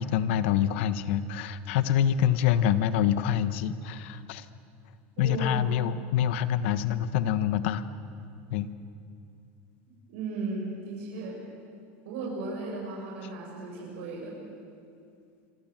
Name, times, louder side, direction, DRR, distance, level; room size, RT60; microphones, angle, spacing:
voice 1, 0.0-4.4 5.2-7.8 8.5-8.7, left 10 dB, 70° left, 12 dB, 1.3 m, -26 dB
voice 2, 5.2-5.8 10.1-11.4 12.0-14.4, right 3 dB, 80° right, -4 dB, 7.4 m, -35 dB
26.5 x 25.0 x 7.5 m, 2.5 s
supercardioid pair, 165°, 7 cm